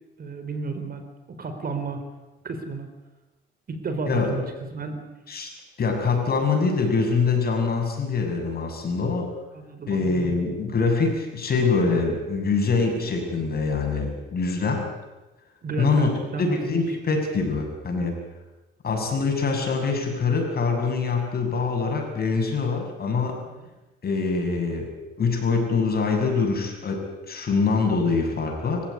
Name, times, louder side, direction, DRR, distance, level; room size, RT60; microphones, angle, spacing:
voice 1, 0.2-1.0 1.3-2.0 2.4-2.9 3.7-4.4 4.7-5.0 9.5-10.2 15.6-16.6 23.5-23.7, right 4 dB, 50° right, 8 dB, 4.2 m, -32 dB
voice 2, 4.1-4.4 5.3-5.5 5.8-9.3 9.9-14.8 15.8-16.1 16.4-18.2 18.8-23.4 24.0-24.9 25.2-28.8, left 4 dB, 50° left, 2 dB, 7.0 m, -24 dB
25.5 x 15.5 x 9.7 m, 1.1 s
cardioid pair, 90°, 20 cm